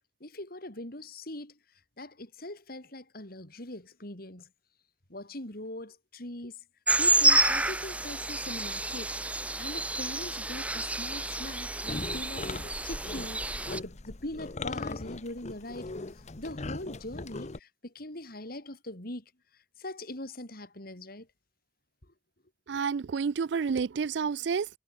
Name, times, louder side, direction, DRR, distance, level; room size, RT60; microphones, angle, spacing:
voice 1, 0.2-1.6 2.0-4.5 5.1-6.6 7.0-9.1 9.6-15.9 16.4-19.2 19.8-21.3 22.7-22.8, left 1 dB, 55° left, 5.1 m, -41 dB
sound 1, 6.9-13.8, right 2 dB, 10° right, 0.8 m, -29 dB
sound 2, 11.9-17.6, left 3 dB, 40° left, 0.9 m, -39 dB
voice 2, 22.7-24.7, right 5 dB, 75° right, 0.4 m, -29 dB
head